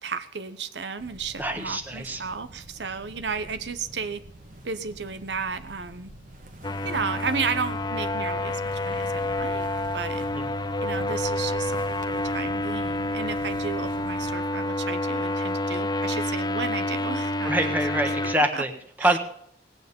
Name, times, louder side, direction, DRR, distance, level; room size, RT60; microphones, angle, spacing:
voice 1, 0.0-4.2 4.6-6.1 6.8-9.6 9.9-10.3 10.8-17.7 18.4-18.6 19.0-19.2, right 5 dB, 80° right, 13 dB, 1.0 m, -33 dB
sound 1, 1.0-14.3, right 1 dB, 50° right, 1.5 m, -46 dB
voice 2, 1.4-2.2 10.3-10.5 17.4-18.7 19.0-19.2, right 1 dB, 10° right, 5 dB, 1.4 m, -25 dB
sound 2, 6.6-18.4, left 1 dB, 25° left, 0.4 m, -28 dB
18.0 x 9.2 x 5.4 m, 0.65 s
head